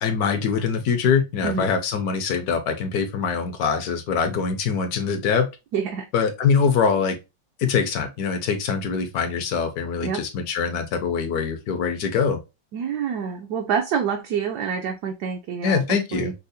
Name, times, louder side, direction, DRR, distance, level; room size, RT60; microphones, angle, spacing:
voice 1, 0.0-5.5 6.1-7.2 7.6-12.4 15.6-16.3, left 6 dB, 65° left, 1.1 m, -23 dB
voice 2, 5.7-6.1 10.0-10.2 12.7-16.3, right 7 dB, 70° right, 1.0 m, -27 dB
5.5 x 2.0 x 2.6 m
omnidirectional pair, 2.0 m